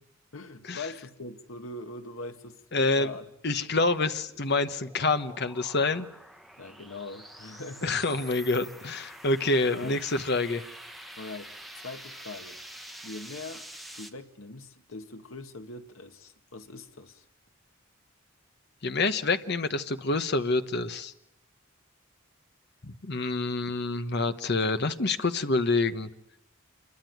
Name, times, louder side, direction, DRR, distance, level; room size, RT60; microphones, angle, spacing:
voice 1, 0.3-3.2 6.6-8.0 9.7-10.0 11.2-12.6 13.0-13.7 13.9-17.3, left 2 dB, 80° left, 1.8 m, -42 dB
voice 2, 2.7-3.1 3.4-6.1 7.8-10.6 18.8-21.1 22.8-26.1, left 3 dB, 55° left, 1.2 m, -27 dB
sound 1, 4.0-14.1, equal, ahead, 1.4 m, -47 dB
27.0 x 23.0 x 9.3 m
head